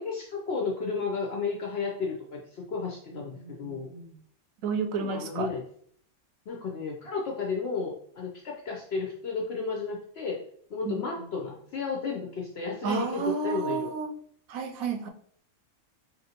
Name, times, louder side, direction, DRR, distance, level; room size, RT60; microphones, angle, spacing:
voice 1, 0.0-3.9 5.0-5.6 6.5-10.4 10.7-13.9, left 4 dB, 65° left, -1 dB, 0.6 m, -33 dB
voice 2, 3.1-4.1 4.6-5.5 10.9-11.0 12.8-14.1 14.5-15.1, right 5 dB, 75° right, 4 dB, 1.0 m, -31 dB
4.3 x 2.6 x 2.7 m, 0.62 s
omnidirectional pair, 1.5 m